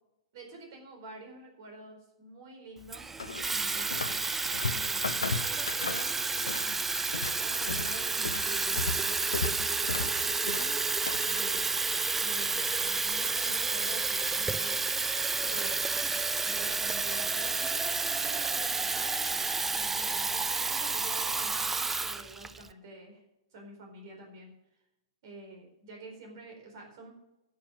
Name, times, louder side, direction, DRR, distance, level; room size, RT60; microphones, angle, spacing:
voice 1, 0.3-4.2 4.7-10.9 11.2-11.7 12.2-14.9 15.4-23.2 23.5-24.5 25.2-27.1, right 2 dB, 50° right, 2 dB, 4.4 m, -48 dB
Water tap faucet / Fill (with liquid), 2.9-22.7, right 4 dB, 10° right, 0.4 m, -30 dB
sound 1, 3.2-4.2 4.5-6.7 7.0-11.4, left 5 dB, 75° left, 0.8 m, -35 dB
11.0 x 7.1 x 9.0 m, 0.91 s
figure-of-eight pair, 110°, 3 cm